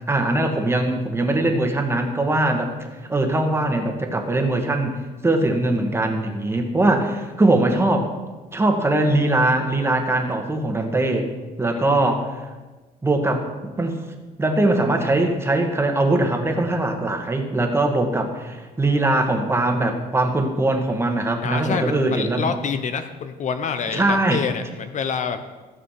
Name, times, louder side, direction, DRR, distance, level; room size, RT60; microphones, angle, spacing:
voice 1, 0.1-4.9 5.2-8.1 8.5-11.3 11.6-12.4 13.0-13.5 13.8-14.0 14.4-22.5 23.9-24.4, right 2 dB, 15° right, 3 dB, 1.8 m, -21 dB
voice 2, 11.7-12.2 21.4-25.6, left 6 dB, 45° left, 9 dB, 0.8 m, -27 dB
16.0 x 6.8 x 5.9 m, 1.3 s
cardioid pair, 110°, 17 cm